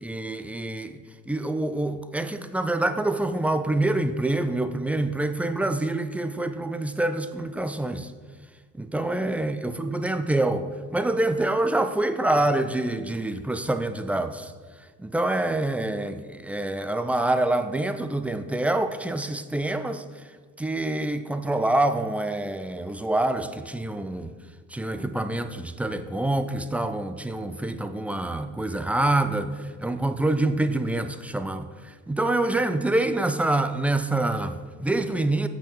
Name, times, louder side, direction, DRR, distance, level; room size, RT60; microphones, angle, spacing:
voice 1, 0.0-1.0 1.3-8.1 8.7-14.5 15.0-20.3 20.6-24.3 24.7-35.5, right 2 dB, 5° right, 10 dB, 0.3 m, -26 dB
8.1 x 5.9 x 7.1 m, 1.4 s
figure-of-eight pair, 60°, 45 cm